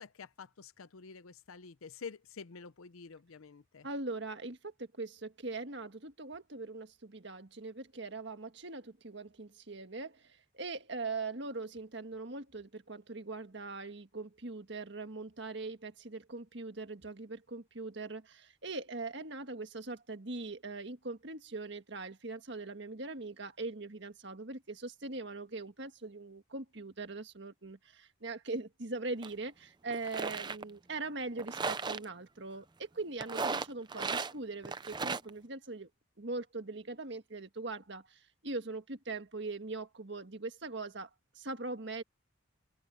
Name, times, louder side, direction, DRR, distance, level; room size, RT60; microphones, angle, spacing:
voice 1, 0.0-3.9, left 5 dB, 90° left, 0.7 m, -48 dB
voice 2, 3.8-35.9 36.2-41.1 41.4-42.0, right 3 dB, 55° right, 1.7 m, -41 dB
sound 1, 29.2-29.3 29.9-30.6 31.4-32.0 33.2-34.3 34.6-35.3, right 4 dB, 20° right, 0.6 m, -35 dB
open air
head